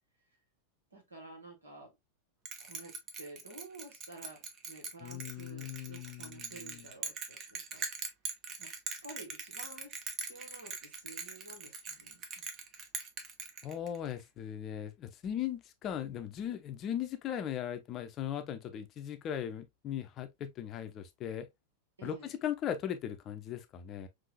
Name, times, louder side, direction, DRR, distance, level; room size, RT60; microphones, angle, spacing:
voice 1, 0.9-1.9 2.6-7.9 8.6-8.7 9.0-9.9 10.2-12.4 22.0-22.3, right 2 dB, 75° right, 1.6 m, -51 dB
Bell, 2.4-14.1, right 5 dB, 30° right, 0.8 m, -42 dB
voice 2, 5.0-6.9 13.6-21.5 22.0-24.1, left 10 dB, 30° left, 0.6 m, -38 dB
5.5 x 2.6 x 2.2 m
figure-of-eight pair, 90°, 0 cm